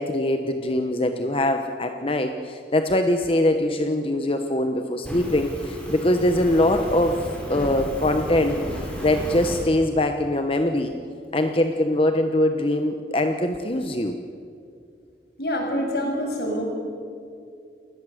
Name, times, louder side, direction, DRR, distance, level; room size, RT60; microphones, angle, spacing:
voice 1, 0.0-8.6 9.0-10.9 11.3-14.2, left 1 dB, 30° left, 6 dB, 1.1 m, -22 dB
Fire, 5.0-9.6, equal, 5° left, 6.1 m, -33 dB
voice 2, 15.4-16.6, equal, 65° left, 1 dB, 7.3 m, -26 dB
28.5 x 20.5 x 7.9 m, 2.4 s
head